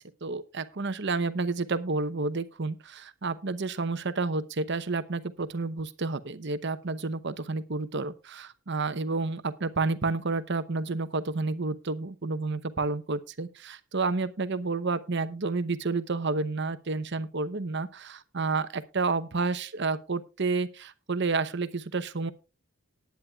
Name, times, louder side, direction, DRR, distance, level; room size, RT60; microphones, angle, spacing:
voice 1, 0.2-22.3, right 3 dB, 50° right, 12 dB, 0.8 m, -30 dB
19.0 x 9.4 x 2.4 m, 0.29 s
head